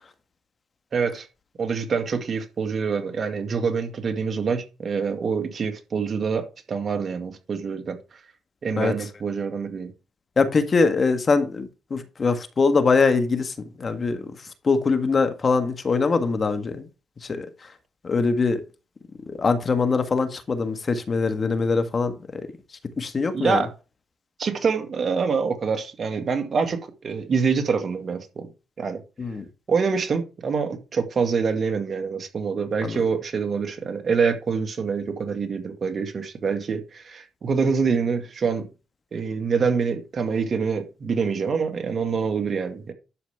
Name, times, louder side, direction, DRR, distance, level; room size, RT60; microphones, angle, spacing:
voice 1, 0.9-1.3 1.6-8.0 8.6-9.9 23.3-23.7 24.4-28.5 28.8-29.0 29.7-38.7 39.1-42.9, right 5 dB, 45° right, 2.2 m, -25 dB
voice 2, 10.4-14.3 14.6-16.9 17.3-17.5 18.0-18.6 19.4-22.5 23.0-23.6 29.2-29.4 32.8-33.0, left 4 dB, 35° left, 1.7 m, -22 dB
11.5 x 7.2 x 3.7 m
cardioid pair, 90°, 0 cm